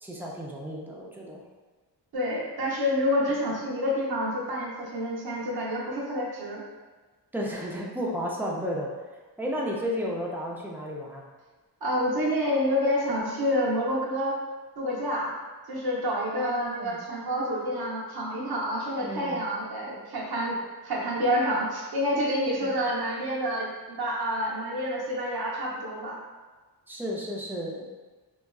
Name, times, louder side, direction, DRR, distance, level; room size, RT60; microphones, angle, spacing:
voice 1, 0.0-1.4 7.3-8.9 9.4-11.3 16.3-17.0 19.0-19.4 26.9-27.8, equal, 5° right, -3 dB, 0.4 m, -33 dB
voice 2, 2.1-6.6 11.8-14.4 14.8-15.3 15.7-20.6 20.8-26.2, equal, 60° right, -4 dB, 0.9 m, -28 dB
3.9 x 2.4 x 2.2 m, 1.3 s
wide cardioid pair, 130°, 41 cm